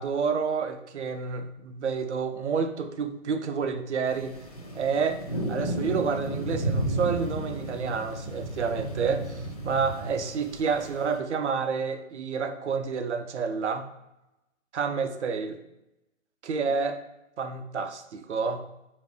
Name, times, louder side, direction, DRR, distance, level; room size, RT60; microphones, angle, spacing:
voice 1, 0.0-4.4 4.7-5.2 5.5-13.9 14.7-15.6 16.4-17.0 17.4-18.6, right 5 dB, 60° right, 7 dB, 0.5 m, -29 dB
sound 1, 4.1-11.2, right 1 dB, 30° left, 0.4 m, -33 dB
3.2 x 2.6 x 3.5 m, 0.92 s
figure-of-eight pair, 135°, 39 cm